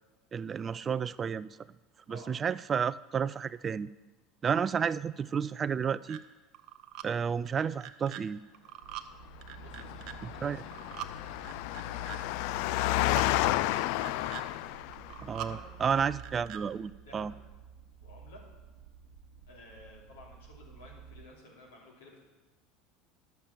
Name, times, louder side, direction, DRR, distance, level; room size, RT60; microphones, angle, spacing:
voice 1, 0.3-1.5 2.1-3.9 4.4-6.2 7.0-8.4 10.4-10.6 15.2-17.3, right 7 dB, 30° right, 19 dB, 0.3 m, -31 dB
sound 1, 6.1-6.2 6.5-7.0 7.5-8.2 8.5-9.1 9.4-10.1 10.6-11.1 11.4-12.2 12.7-13.3 13.7-14.4 14.9-15.5 15.9-16.6, right 13 dB, 60° right, 0.7 m, -43 dB
sound 2, 8.8-21.3, right 7 dB, 85° right, 1.1 m, -52 dB
voice 2, 9.6-10.7 11.1-13.4 15.4-15.6 17.0-17.3 18.0-18.4 19.5-22.2, left 2 dB, 85° left, -2 dB, 2.9 m, -54 dB
Engine, 9.6-15.2, left 16 dB, 70° left, 0.3 m, -31 dB
10.5 x 7.2 x 7.0 m, 1.2 s
hypercardioid pair, 85°, 0 cm